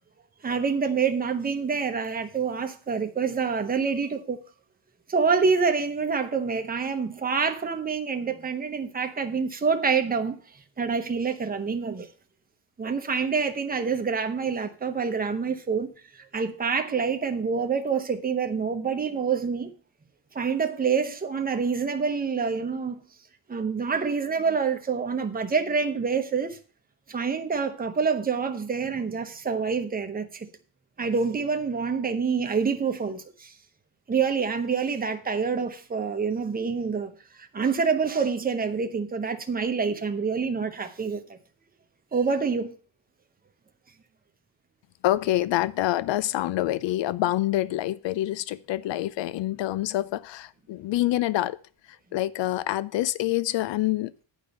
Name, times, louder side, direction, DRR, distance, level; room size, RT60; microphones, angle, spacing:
voice 1, 0.4-4.4 5.1-10.4 10.8-12.1 12.8-15.9 16.3-19.7 20.3-23.0 23.5-26.6 27.1-30.5 31.0-33.5 34.1-37.1 37.4-41.4 42.1-42.7, right 5 dB, 20° right, 0.8 m, -27 dB
voice 2, 45.0-51.6 52.1-54.1, left 15 dB, 70° left, 0.6 m, -26 dB
8.9 x 5.4 x 6.4 m
wide cardioid pair, 170°, 45 cm